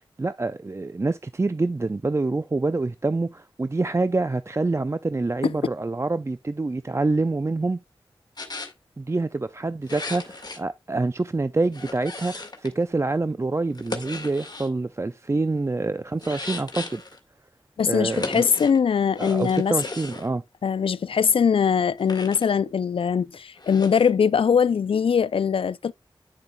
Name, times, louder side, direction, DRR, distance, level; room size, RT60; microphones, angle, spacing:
voice 1, 0.2-7.8 9.0-17.0 17.9-18.4 19.2-20.4, right 3 dB, 30° right, 0.5 m, -26 dB
sound 1, 8.4-8.7 9.8-10.6 11.7-12.8 13.7-14.7 16.2-17.2 18.1-18.8 19.1-20.3 22.0-22.5 23.6-24.1, left 3 dB, 50° left, 1.6 m, -36 dB
voice 2, 17.8-19.7 20.6-25.9, left 7 dB, 75° left, 0.4 m, -21 dB
9.6 x 6.8 x 2.3 m
cardioid pair, 45°, 9 cm